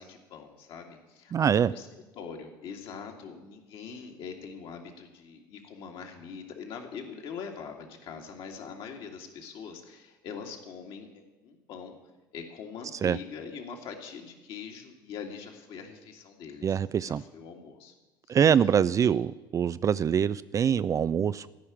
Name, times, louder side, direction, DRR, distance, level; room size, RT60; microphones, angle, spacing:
voice 1, 0.0-1.9 2.2-11.1 11.4-12.0 12.3-17.9 18.3-18.4 19.0-19.1, left 6 dB, 55° left, 3 dB, 2.1 m, -43 dB
voice 2, 1.3-1.7 13.0-13.2 16.6-17.2 18.3-19.3 19.5-21.5, right 8 dB, 30° right, 16 dB, 0.3 m, -24 dB
14.5 x 5.7 x 9.7 m, 1.1 s
figure-of-eight pair, 65°, 11 cm